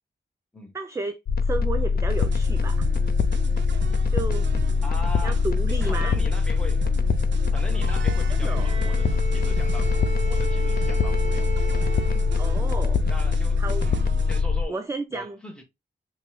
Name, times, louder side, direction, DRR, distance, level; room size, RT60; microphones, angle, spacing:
voice 1, 0.7-2.9 4.1-4.5 5.2-6.2 8.3-8.7 12.4-13.0 13.6-13.9 14.7-15.4, right 3 dB, 15° right, 0.3 m, -32 dB
sound 1, 1.3-14.7, left 5 dB, 55° left, 0.4 m, -23 dB
sound 2, 2.1-14.4, right 7 dB, 80° right, 0.5 m, -38 dB
voice 2, 4.8-6.8 7.5-9.9 10.2-11.5 12.1-12.3 13.1-14.8 15.1-15.6, left 1 dB, 5° left, 1.2 m, -40 dB
Bowed string instrument, 8.5-12.9, right 9 dB, 30° right, 1.1 m, -35 dB
5.2 x 3.1 x 2.2 m
wide cardioid pair, 180°, 19 cm